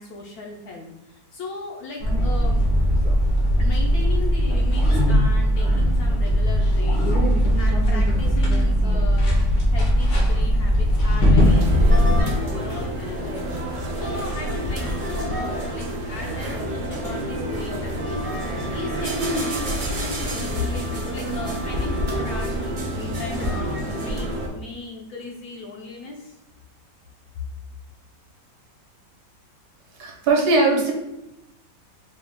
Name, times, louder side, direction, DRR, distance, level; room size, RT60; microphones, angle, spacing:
voice 1, 0.0-2.6 3.6-26.3, left 3 dB, 70° left, 0 dB, 1.0 m, -37 dB
sound 1, 2.0-12.2, equal, 85° left, 1.8 m, -19 dB
sound 2, 11.4-24.5, equal, 80° right, 0.4 m, -28 dB
voice 2, 30.0-30.9, right 3 dB, 65° right, -1 dB, 1.3 m, -19 dB
5.0 x 2.3 x 3.5 m, 0.90 s
omnidirectional pair, 1.9 m